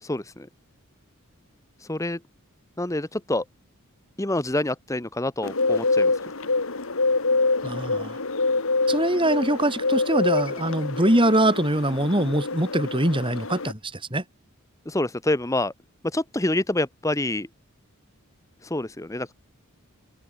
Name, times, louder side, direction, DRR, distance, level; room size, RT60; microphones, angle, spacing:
voice 1, 0.0-0.5 1.8-2.2 2.8-3.4 4.2-6.1 14.9-15.7 16.0-17.5 18.6-19.3, left 1 dB, 15° left, 0.9 m, -27 dB
Bird, 5.4-13.7, left 3 dB, 65° left, 1.8 m, -26 dB
voice 2, 7.6-8.2 8.9-14.2, right 1 dB, 25° right, 4.5 m, -23 dB
open air
head